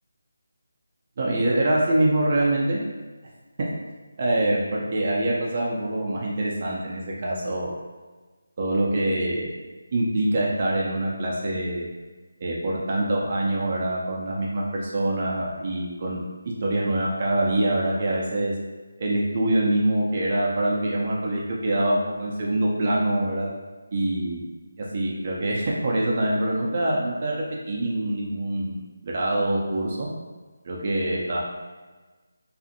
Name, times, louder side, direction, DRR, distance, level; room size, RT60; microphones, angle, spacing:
voice 1, 1.2-2.8 3.6-3.7 4.2-7.7 8.6-9.5 9.9-11.9 12.4-16.2 16.6-18.5 19.0-23.5 23.9-24.4 24.9-30.1 30.6-31.4, right 1 dB, 40° right, -4 dB, 0.4 m, -25 dB
2.5 x 2.4 x 2.5 m, 1.3 s
figure-of-eight pair, 165°, 0 cm